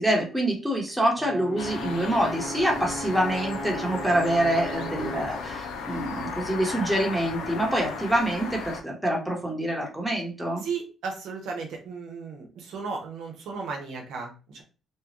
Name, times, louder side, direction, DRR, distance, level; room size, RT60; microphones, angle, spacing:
voice 1, 0.0-10.6, right 1 dB, 5° right, -1 dB, 1.1 m, -26 dB
Brass instrument, 1.2-5.4, equal, 35° right, 1.1 m, -37 dB
sound 1, 1.6-8.8, left 4 dB, 90° left, 0.6 m, -36 dB
voice 2, 10.6-14.6, right 5 dB, 80° right, 1 dB, 0.8 m, -35 dB
2.9 x 2.3 x 3.0 m, 0.34 s
cardioid pair, 90°, 0 cm